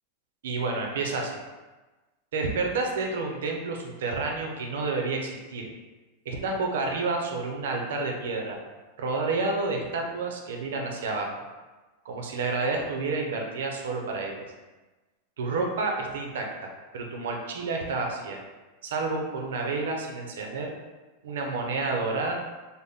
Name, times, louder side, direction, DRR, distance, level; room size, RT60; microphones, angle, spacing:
voice 1, 0.4-1.4 2.3-5.7 6.2-8.6 9.0-11.3 12.0-14.4 15.4-18.4 18.8-20.7 21.2-22.3, right 3 dB, 90° right, 1 dB, 0.7 m, -30 dB
4.0 x 2.1 x 3.5 m, 1.2 s
supercardioid pair, 180°, 0 cm